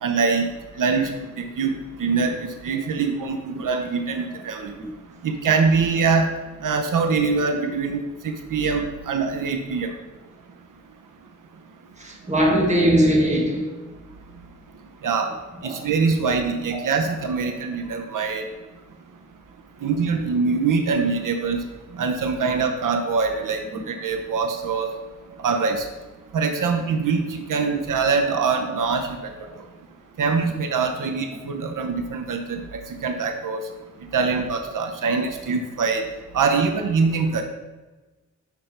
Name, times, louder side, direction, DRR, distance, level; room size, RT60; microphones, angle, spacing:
voice 1, 0.0-0.5 0.8-1.1 1.4-2.4 2.6-4.7 5.2-6.3 6.6-9.9 15.0-15.3 15.6-18.4 19.8-21.6 21.9-24.9 25.4-25.8 26.3-29.1 30.2-33.6 34.1-36.0 36.3-37.4, right 5 dB, 85° right, 4 dB, 0.7 m, -23 dB
voice 2, 12.0-13.8 15.6-15.8 16.1-16.2 16.7-16.9 17.4-17.5 25.6-25.7, equal, 25° right, -1 dB, 1.3 m, -21 dB
6.0 x 5.2 x 4.4 m, 1.2 s
wide cardioid pair, 170°, 31 cm